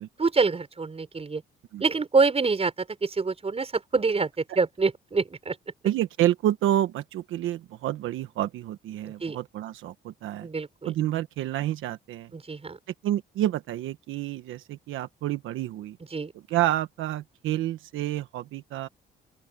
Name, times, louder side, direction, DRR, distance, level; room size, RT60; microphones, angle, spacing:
voice 1, 0.2-1.4 1.8-5.6 9.1-9.4 10.4-10.9 12.3-12.8 16.1-16.3, right 4 dB, 30° right, 6.3 m, -26 dB
voice 2, 5.8-10.5 10.8-12.3 13.0-16.0 16.5-18.9, right 13 dB, 85° right, 1.2 m, -29 dB
open air
cardioid pair, 90°, 20 cm